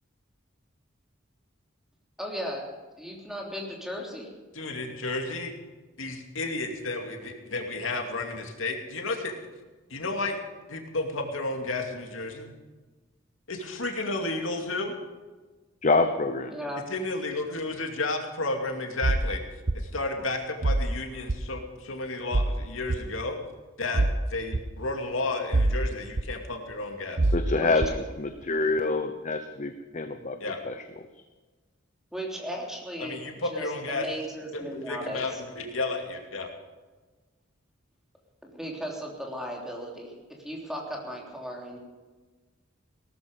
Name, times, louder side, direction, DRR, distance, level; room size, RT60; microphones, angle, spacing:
voice 1, 2.2-2.6 3.0-4.3 16.5-16.9 27.6-27.7 32.1-33.2 33.5-35.4 38.4-40.2 40.4-41.8, equal, ahead, -1 dB, 3.4 m, -36 dB
voice 2, 4.5-5.5 6.0-9.3 9.9-10.4 10.7-12.5 13.5-14.9 16.9-19.4 19.8-23.4 23.8-27.3 30.4-30.6 33.0-34.1 34.5-36.5, left 2 dB, 90° left, 3 dB, 2.5 m, -32 dB
voice 3, 15.8-16.5 27.3-30.4 30.6-30.8, left 3 dB, 40° left, 7 dB, 0.9 m, -26 dB
sound 1, 19.0-19.3 19.7-19.8 20.6-20.9 21.3-21.4 22.3-22.5 22.9-23.0 23.9-24.2 24.5-24.6 25.5-25.8 26.2-26.3 27.2-27.4 27.8-27.9, right 2 dB, 50° right, 0.8 m, -24 dB
17.5 x 13.5 x 5.3 m, 1.3 s
head